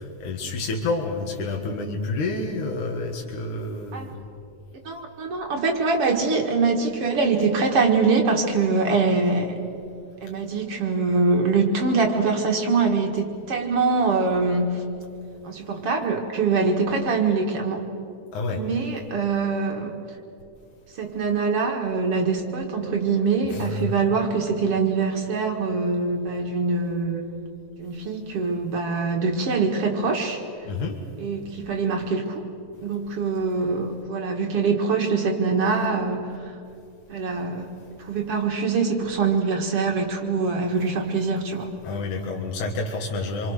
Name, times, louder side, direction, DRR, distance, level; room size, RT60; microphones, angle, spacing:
voice 1, 0.0-4.2 18.3-18.6 23.7-23.9 30.7-31.0 41.8-43.5, left 3 dB, 75° left, 0 dB, 3.1 m, -29 dB
voice 2, 4.8-9.6 10.2-14.9 15.4-18.0 18.5-19.9 20.9-27.2 27.8-30.4 31.2-32.5 32.8-36.5 37.1-37.7 38.0-41.7, right 4 dB, 50° right, 2 dB, 2.5 m, -24 dB
27.5 x 24.0 x 6.5 m, 2.7 s
omnidirectional pair, 3.6 m